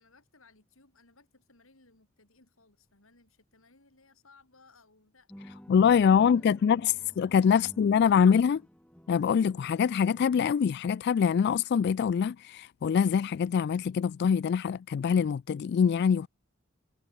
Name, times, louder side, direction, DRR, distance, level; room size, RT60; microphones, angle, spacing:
voice 1, 0.0-5.3 5.8-7.0, left 3 dB, 85° left, 5.0 m, -62 dB
sound 1, 5.3-10.3, equal, 5° left, 1.6 m, -51 dB
voice 2, 5.7-8.6 9.1-16.3, left 7 dB, 55° left, 0.3 m, -24 dB
head